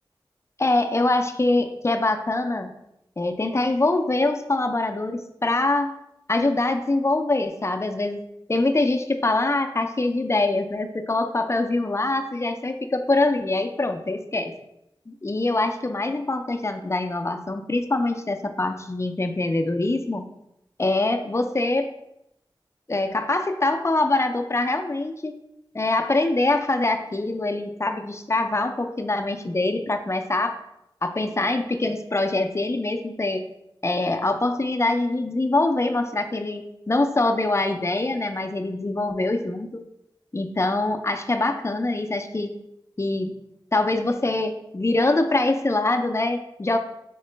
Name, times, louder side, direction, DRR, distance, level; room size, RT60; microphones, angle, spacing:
voice 1, 0.6-2.7 3.2-5.9 6.3-8.2 8.5-14.5 15.1-20.2 20.8-21.9 22.9-25.3 25.7-30.6 31.0-33.5 33.8-39.8 40.3-42.5 43.0-43.4 43.7-46.8, left 2 dB, 30° left, 7 dB, 0.4 m, -24 dB
3.8 x 3.6 x 3.3 m, 0.83 s
wide cardioid pair, 50°, 9 cm